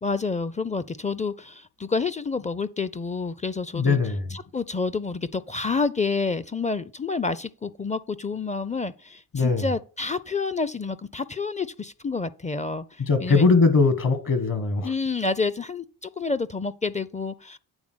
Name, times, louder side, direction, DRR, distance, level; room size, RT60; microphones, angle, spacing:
voice 1, 0.0-4.0 4.3-13.5 14.8-17.6, left 4 dB, 20° left, 0.5 m, -29 dB
voice 2, 3.7-4.2 9.3-9.6 13.0-14.9, left 4 dB, 50° left, 1.5 m, -20 dB
8.9 x 3.5 x 6.1 m
supercardioid pair, 55°, 40 cm